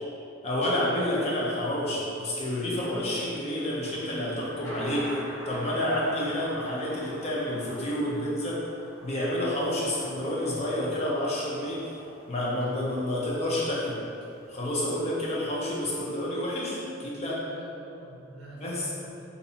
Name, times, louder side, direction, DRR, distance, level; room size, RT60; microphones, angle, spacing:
voice 1, 0.4-5.1 5.5-8.6 9.0-11.9 12.3-14.0 14.5-17.4 18.5-18.9, left 1 dB, 35° left, -6 dB, 0.5 m, -29 dB
Thunder, 2.7-15.0, equal, 70° left, 0.9 m, -45 dB
voice 2, 17.3-19.2, right 1 dB, 60° right, -6 dB, 0.6 m, -45 dB
2.6 x 2.0 x 2.7 m, 2.6 s
head